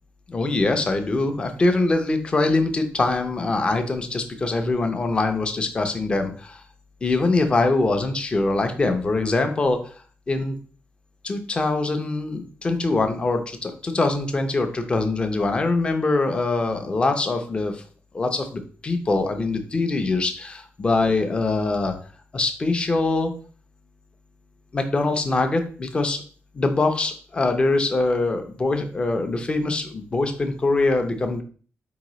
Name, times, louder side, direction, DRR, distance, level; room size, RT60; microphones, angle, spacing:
voice 1, 0.3-6.6 7.0-9.8 10.3-10.6 11.2-17.8 18.1-21.9 22.3-23.3 24.7-26.2 26.5-31.4, left 3 dB, 25° left, 6 dB, 0.5 m, -23 dB
4.5 x 3.8 x 3.0 m, 0.42 s
wide cardioid pair, 175°, 4 cm